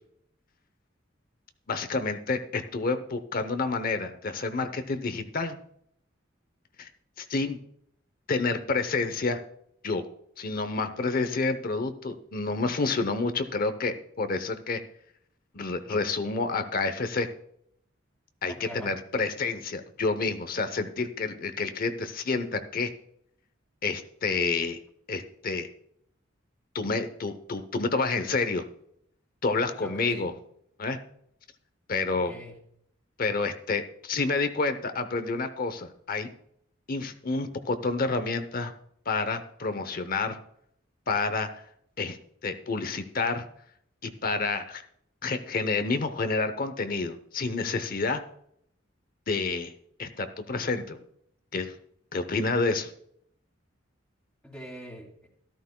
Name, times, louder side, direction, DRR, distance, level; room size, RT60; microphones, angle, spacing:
voice 1, 1.7-5.6 6.8-6.9 7.2-7.6 8.3-9.4 9.8-10.0 10.4-14.8 15.5-17.3 18.4-22.9 23.8-24.8 25.1-25.7 26.7-28.6 29.4-30.3 30.8-31.0 31.9-32.3 33.2-36.3 36.9-38.7 39.1-40.4 41.1-41.6 42.0-42.2 42.4-43.5 44.0-44.8 45.2-48.2 49.3-49.7 50.0-51.0 51.5-51.7 52.1-52.9, left 3 dB, 45° left, 10 dB, 0.8 m, -29 dB
voice 2, 18.5-19.0 29.7-30.3 32.1-32.6 54.4-55.3, equal, 5° left, -4 dB, 2.3 m, -43 dB
13.5 x 13.0 x 2.3 m, 0.69 s
head